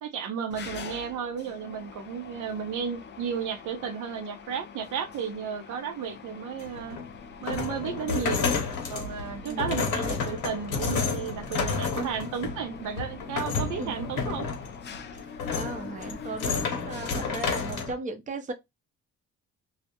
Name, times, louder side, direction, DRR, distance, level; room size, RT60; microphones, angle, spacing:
voice 1, 0.0-7.0 7.4-8.5 8.9-14.5, right 7 dB, 85° right, 0.6 m, -33 dB
Mechanisms, 0.5-17.9, left 6 dB, 35° left, 0.4 m, -45 dB
sound 1, 6.6-17.9, left 5 dB, 80° left, 0.9 m, -31 dB
voice 2, 15.1-18.5, right 3 dB, 25° right, 0.5 m, -37 dB
2.4 x 2.0 x 2.7 m
cardioid pair, 90°, 30 cm